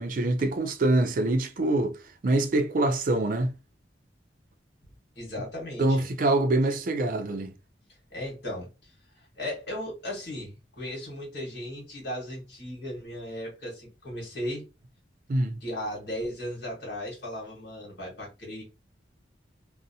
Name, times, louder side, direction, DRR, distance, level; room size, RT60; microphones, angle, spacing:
voice 1, 0.0-2.0 2.2-3.5 5.8-7.5 15.3-15.6, right 2 dB, 50° right, 0.4 m, -25 dB
voice 2, 5.1-6.0 8.1-14.6 15.6-18.6, left 1 dB, 70° left, 1.2 m, -36 dB
2.6 x 2.0 x 2.6 m
head